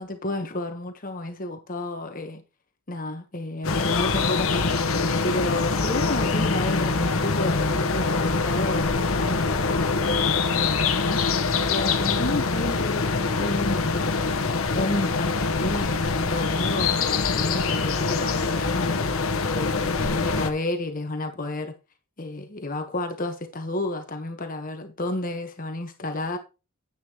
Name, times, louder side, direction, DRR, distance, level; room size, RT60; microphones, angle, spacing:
voice 1, 0.0-2.4 2.9-4.8 5.2-11.4 11.7-18.9 19.4-21.7 22.2-26.4, left 2 dB, 40° left, 1.2 m, -31 dB
sound 1, 3.6-20.5, left 4 dB, 70° left, 1.2 m, -24 dB
10.5 x 8.3 x 3.0 m
head